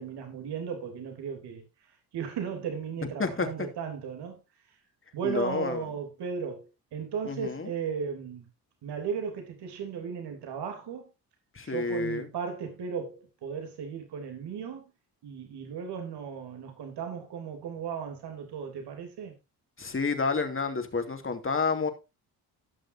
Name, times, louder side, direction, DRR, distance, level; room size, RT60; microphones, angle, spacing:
voice 1, 0.0-4.4 5.1-8.5 8.8-11.1 11.6-14.8 15.2-19.3, right 6 dB, 70° right, 3.3 m, -36 dB
voice 2, 5.2-5.9 7.2-7.7 11.5-12.3 19.8-21.9, left 4 dB, 30° left, 2.7 m, -29 dB
17.5 x 6.5 x 2.7 m
supercardioid pair, 65°, 41 cm